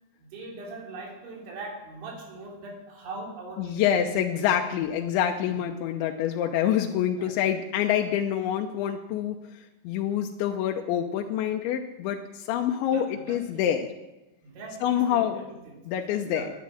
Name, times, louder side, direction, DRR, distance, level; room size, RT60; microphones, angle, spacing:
voice 1, 0.2-4.5 5.4-5.6 7.1-7.4 12.8-13.7 14.4-15.8 16.2-16.5, right 2 dB, 90° right, 0 dB, 5.8 m, -41 dB
voice 2, 3.6-9.4 9.8-13.9 14.8-15.5 15.9-16.5, left 10 dB, 90° left, 3 dB, 3.2 m, -26 dB
11.5 x 10.5 x 9.9 m, 0.96 s
omnidirectional pair, 5.2 m